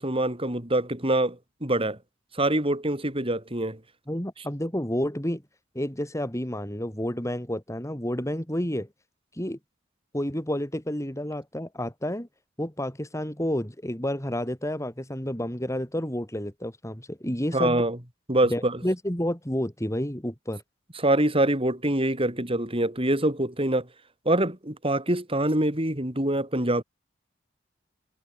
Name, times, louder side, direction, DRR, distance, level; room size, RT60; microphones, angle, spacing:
voice 1, 0.0-2.0 2.3-3.8 17.5-18.0 18.3-18.8 21.0-23.9 24.2-26.8, right 1 dB, 30° right, 6.7 m, -25 dB
voice 2, 4.1-5.4 5.8-8.9 9.4-9.6 10.1-12.3 12.6-17.8 18.4-20.6, equal, 15° left, 5.3 m, -30 dB
head